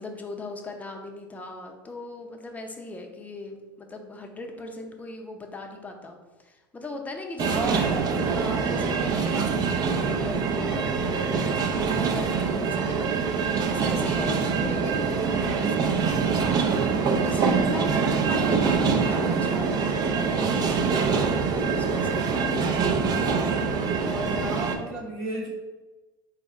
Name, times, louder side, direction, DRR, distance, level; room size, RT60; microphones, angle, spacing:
voice 1, 0.0-7.8 8.2-23.1 23.4-24.6, left 2 dB, 15° left, 2 dB, 0.6 m, -39 dB
sound 1, 7.4-24.8, right 5 dB, 35° right, 0.5 m, -24 dB
voice 2, 7.5-8.1 24.4-25.5, right 3 dB, 55° right, -6 dB, 0.9 m, -32 dB
4.0 x 2.4 x 4.0 m, 1.2 s
hypercardioid pair, 90°, 11 cm